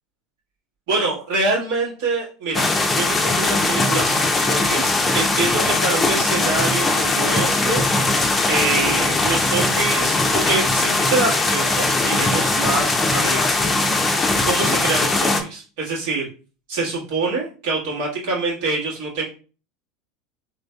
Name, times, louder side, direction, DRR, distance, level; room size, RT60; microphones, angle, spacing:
voice 1, 0.9-14.1 14.4-16.3 16.7-19.2, right 3 dB, 65° right, -4 dB, 1.4 m, -25 dB
sound 1, 2.5-15.4, left 2 dB, 20° left, 0.5 m, -20 dB
3.8 x 2.6 x 2.2 m, 0.37 s
hypercardioid pair, 85°, 0 cm